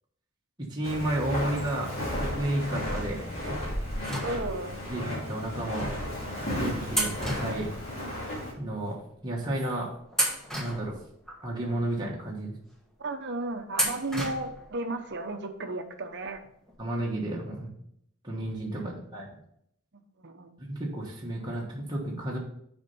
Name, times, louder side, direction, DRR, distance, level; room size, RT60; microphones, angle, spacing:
voice 1, 0.6-1.9 2.2-3.3 4.9-5.9 6.4-7.7 8.6-9.9 10.6-11.0 11.4-12.5 16.8-17.7 18.2-19.3 20.6-22.4, right 1 dB, 20° right, -4 dB, 1.3 m, -32 dB
Walk footsteps, 0.8-8.5, left 1 dB, 30° left, 2.7 m, -34 dB
sound 1, 4.0-4.9 5.7-5.8 6.9-8.3 8.6-8.7 9.5-9.7 10.1-11.4 11.9-12.0 13.7-14.7 15.0-15.1 16.3-16.4 16.7-16.8, right 1 dB, ahead, 1.3 m, -32 dB
voice 2, 4.2-4.7 13.0-16.4 18.8-18.9 20.2-20.5, right 2 dB, 55° right, 7 dB, 0.8 m, -34 dB
7.1 x 4.4 x 5.4 m, 0.72 s
head